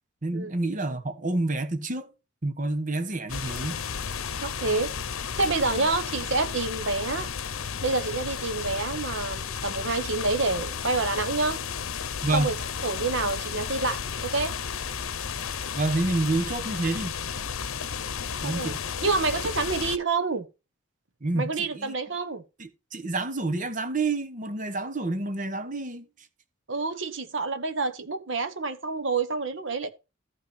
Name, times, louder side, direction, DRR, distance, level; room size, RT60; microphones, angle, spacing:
voice 1, 0.2-2.1 2.4-3.8 5.7-5.9 12.2-12.5 15.7-17.2 18.4-18.8 21.2-21.9 22.6-26.1, right 2 dB, 40° right, 1.1 m, -28 dB
sound 1, 3.3-20.0, left 7 dB, 90° left, 0.8 m, -33 dB
voice 2, 4.4-4.9 5.3-7.3 7.8-11.6 12.3-12.5 12.8-14.5 18.4-18.7 19.0-20.5 21.3-22.4 26.7-29.9, right 3 dB, 60° right, 1.3 m, -28 dB
13.5 x 5.9 x 4.3 m
head